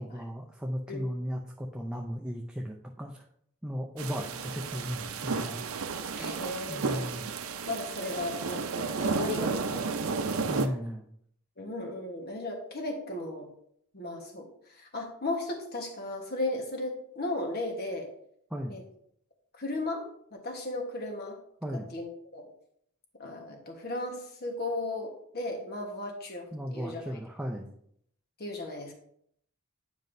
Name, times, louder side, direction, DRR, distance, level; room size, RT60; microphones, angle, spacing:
voice 1, 0.0-3.2 3.6-5.6 6.7-7.3 10.4-11.0 18.5-18.8 21.6-21.9 26.5-27.7, equal, 5° right, -1 dB, 0.5 m, -36 dB
sound 1, 4.0-10.7, right 4 dB, 75° right, 0.6 m, -33 dB
voice 2, 6.2-7.1 7.7-10.3 11.6-13.5 13.9-18.1 18.7-18.8 19.5-21.4 21.7-22.5 23.2-27.2 28.4-28.9, left 2 dB, 45° left, 2 dB, 1.3 m, -36 dB
9.4 x 5.3 x 2.6 m, 0.69 s
head